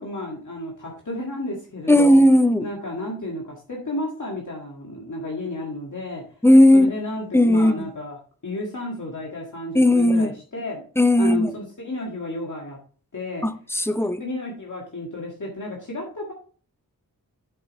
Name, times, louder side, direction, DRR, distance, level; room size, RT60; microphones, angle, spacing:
voice 1, 0.0-2.2 2.6-6.2 6.7-8.2 8.4-10.8 11.2-12.8 13.1-13.4 13.9-16.3, left 2 dB, 55° left, 2.0 m, -32 dB
voice 2, 1.9-2.7 6.4-6.9 7.3-7.7 9.7-10.3 11.0-11.5 13.4-14.2, left 1 dB, 5° left, 0.6 m, -16 dB
7.9 x 6.8 x 3.1 m
wide cardioid pair, 80°, 36 cm